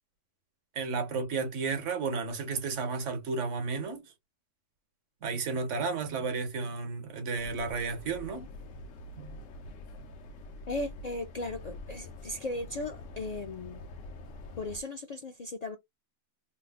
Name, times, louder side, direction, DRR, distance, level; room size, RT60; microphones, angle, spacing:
voice 1, 0.8-4.0 5.2-8.5 9.2-9.4, right 4 dB, 80° right, 1.2 m, -32 dB
sound 1, 7.3-14.8, left 2 dB, 90° left, 1.0 m, -46 dB
voice 2, 10.7-13.8 14.6-15.8, left 2 dB, 60° left, 0.4 m, -37 dB
3.1 x 2.0 x 3.4 m
omnidirectional pair, 1.2 m